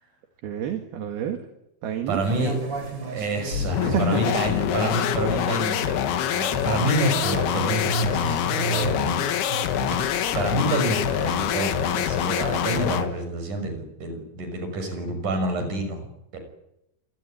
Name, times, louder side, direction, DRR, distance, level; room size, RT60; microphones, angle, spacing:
voice 1, 0.4-1.4 1.8-2.2 3.8-4.4, right 9 dB, 75° right, 5 dB, 3.8 m, -28 dB
voice 2, 2.1-2.5 3.1-9.2 9.5-9.8 10.3-16.1 16.3-16.4, right 2 dB, 50° right, 7 dB, 7.4 m, -28 dB
sound 1, 2.2-12.7, right 3 dB, 30° right, 3.7 m, -35 dB
sound 2, 3.5-13.2, left 10 dB, 80° left, 3.4 m, -25 dB
27.0 x 18.0 x 10.0 m, 0.84 s
omnidirectional pair, 4.5 m